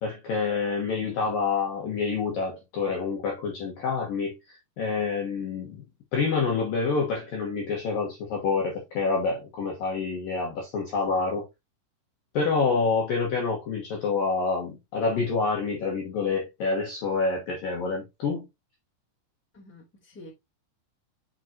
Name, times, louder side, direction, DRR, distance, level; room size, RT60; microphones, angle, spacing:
voice 1, 0.0-5.8 6.1-11.5 12.3-18.5, left 4 dB, 65° left, 2.4 m, -27 dB
voice 2, 19.5-20.3, left 2 dB, 5° left, 1.9 m, -49 dB
7.7 x 6.0 x 2.8 m
omnidirectional pair, 5.8 m